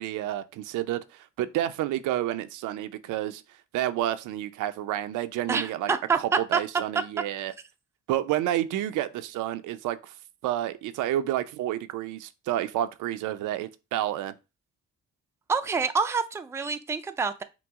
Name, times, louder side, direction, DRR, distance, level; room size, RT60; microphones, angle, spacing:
voice 1, 0.0-3.4 3.7-7.5 8.1-10.1 10.4-14.3, right 12 dB, 85° right, 0.5 m, -30 dB
voice 2, 5.5-6.2 6.5-6.6 15.5-17.4, right 5 dB, 10° right, 0.3 m, -27 dB
5.9 x 2.0 x 3.5 m
cardioid pair, 90°, 30 cm